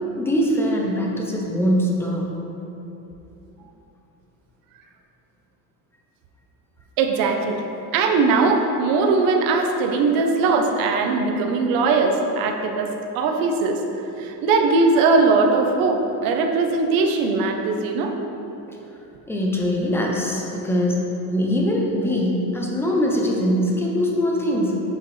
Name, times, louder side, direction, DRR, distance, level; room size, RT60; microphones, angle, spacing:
voice 1, 0.2-2.2 18.7-18.8 19.3-21.0 21.3-24.8, equal, 5° left, -1 dB, 0.4 m, -22 dB
voice 2, 7.0-7.6 7.9-13.8 14.2-18.1, right 3 dB, 55° right, 4 dB, 0.8 m, -20 dB
7.9 x 6.8 x 3.2 m, 2.9 s
cardioid pair, 180°, 41 cm